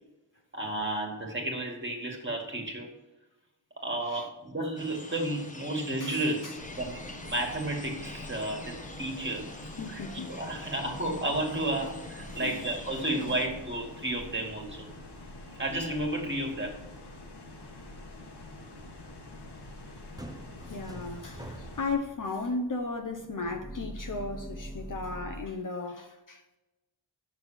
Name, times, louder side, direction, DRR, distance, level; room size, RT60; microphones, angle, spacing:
voice 1, 0.5-2.9 3.8-9.5 9.9-14.9 15.6-16.8, right 1 dB, 25° right, 2.0 m, -32 dB
sound 1, 4.8-13.5, left 1 dB, 20° left, 1.0 m, -45 dB
voice 2, 6.0-6.5 9.8-10.7 12.4-12.6 13.2-13.4 20.7-26.4, left 3 dB, 45° left, 0.9 m, -36 dB
sound 2, 6.6-21.9, left 2 dB, 65° left, 1.6 m, -46 dB
sound 3, 18.8-25.4, right 1 dB, 10° right, 0.7 m, -45 dB
6.4 x 6.1 x 7.2 m
wide cardioid pair, 95°, 43 cm